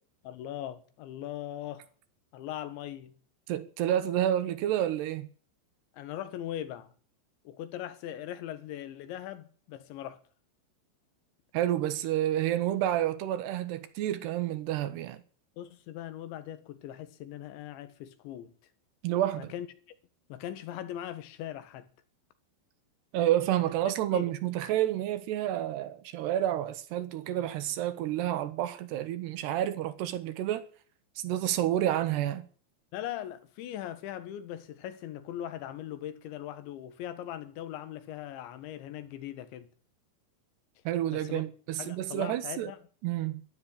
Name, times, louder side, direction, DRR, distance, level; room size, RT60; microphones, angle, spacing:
voice 1, 0.2-1.9 2.3-3.1 5.9-6.9 7.5-10.2 15.6-18.6 19.4-19.7 20.3-21.9 24.1-24.3 32.9-39.7 41.1-41.4 41.8-42.8, left 11 dB, 85° left, 3.9 m, -40 dB
voice 2, 3.5-5.3 11.5-15.2 19.0-19.5 23.1-30.6 31.2-32.5 40.8-42.7 43.0-43.4, right 12 dB, 75° right, 3.2 m, -29 dB
13.0 x 12.0 x 8.7 m
omnidirectional pair, 5.1 m